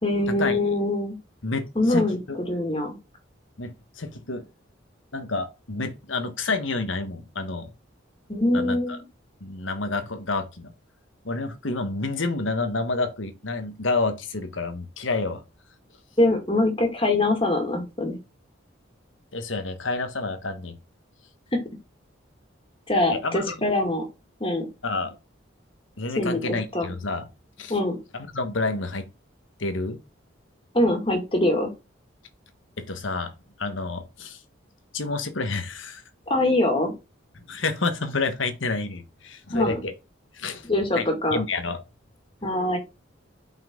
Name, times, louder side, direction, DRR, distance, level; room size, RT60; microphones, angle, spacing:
voice 1, 0.0-1.2 1.8-3.0 8.3-9.0 16.2-18.2 21.5-21.6 22.9-24.1 24.4-24.7 26.2-26.9 27.7-28.0 30.7-31.7 36.3-36.9 39.5-39.8 40.7-41.4 42.4-42.8, left 1 dB, 30° left, 2.2 m, -23 dB
voice 2, 1.4-2.4 3.6-4.5 5.1-7.7 8.5-9.0 9.4-10.7 11.2-15.4 19.3-20.7 23.1-23.5 24.8-25.1 26.0-27.2 27.6-27.7 28.3-29.0 29.6-30.0 32.8-33.3 33.6-34.4 34.9-36.0 37.5-39.9 40.3-40.7 40.9-41.8, left 3 dB, 80° left, 1.3 m, -29 dB
5.8 x 5.6 x 3.8 m
head